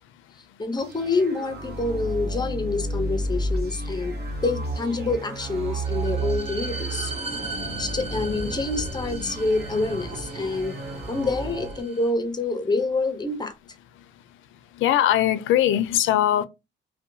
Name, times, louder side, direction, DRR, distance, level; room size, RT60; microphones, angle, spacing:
voice 1, 0.6-4.1 4.4-7.1 7.8-10.8 11.1-13.5, left 3 dB, 20° left, 0.6 m, -27 dB
sound 1, 0.8-11.8, right 1 dB, 55° right, 0.9 m, -31 dB
sound 2, 5.3-12.1, right 2 dB, 30° right, 0.5 m, -39 dB
voice 2, 14.8-16.5, left 11 dB, 80° left, 0.4 m, -20 dB
2.8 x 2.2 x 2.6 m
cardioid pair, 90°, 20 cm